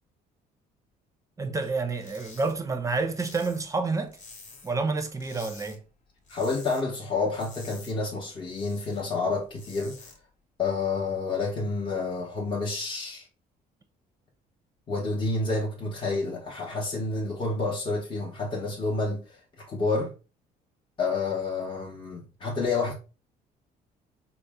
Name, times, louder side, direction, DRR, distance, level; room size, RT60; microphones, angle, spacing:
voice 1, 1.4-4.2 4.6-5.8, right 3 dB, 20° right, 0.6 m, -29 dB
sound 1, 1.9-2.5 2.8-4.8 5.2-5.8 6.1-6.8 7.2-9.0 9.4-10.2, left 3 dB, 50° left, 1.1 m, -48 dB
voice 2, 6.3-10.1 10.6-13.3 14.9-20.1 21.0-22.9, left 3 dB, 30° left, 0.8 m, -29 dB
4.1 x 2.1 x 3.4 m
cardioid pair, 110°, 17 cm